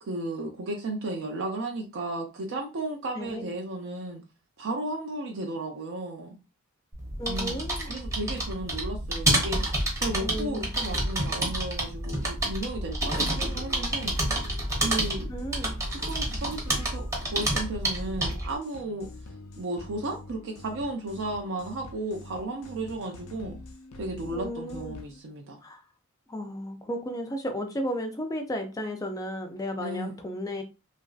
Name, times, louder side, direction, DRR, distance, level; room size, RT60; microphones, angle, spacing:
voice 1, 0.0-4.2 4.6-6.4 7.3-9.6 10.0-14.1 14.8-15.3 15.9-19.1 19.6-23.6 23.9-25.6 29.8-30.2, right 2 dB, 65° right, 0.5 m, -34 dB
voice 2, 3.1-3.5 7.2-8.0 10.2-10.7 15.3-15.8 24.3-25.0 25.6-25.8 26.3-30.6, equal, 15° left, 0.4 m, -34 dB
sound 1, 6.9-18.5, right 1 dB, 15° right, 0.8 m, -29 dB
sound 2, 13.3-25.2, left 2 dB, 85° left, 0.5 m, -46 dB
2.9 x 2.5 x 2.4 m
head